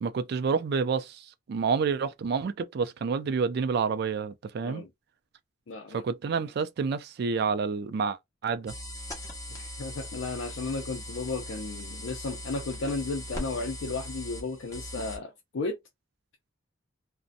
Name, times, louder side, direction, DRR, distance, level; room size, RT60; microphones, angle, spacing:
voice 1, 0.0-4.8 5.9-8.7, right 5 dB, 55° right, 0.3 m, -29 dB
voice 2, 5.7-6.0 9.5-15.8, left 3 dB, 70° left, 0.4 m, -34 dB
sound 1, 8.7-15.2, left 1 dB, 15° left, 0.8 m, -40 dB
2.6 x 2.0 x 2.5 m
head